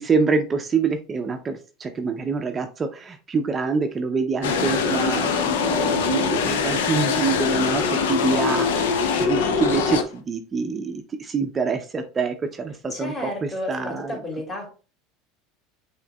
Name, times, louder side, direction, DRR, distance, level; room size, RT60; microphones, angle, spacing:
voice 1, 0.1-7.8 8.1-14.2, right 4 dB, 30° right, 5 dB, 0.5 m, -26 dB
sound 1, 4.4-10.0, left 5 dB, 80° left, 0.6 m, -23 dB
voice 2, 12.9-14.7, left 1 dB, 30° left, -1 dB, 2.2 m, -32 dB
5.8 x 3.1 x 2.2 m, 0.35 s
hypercardioid pair, 85°, 0 cm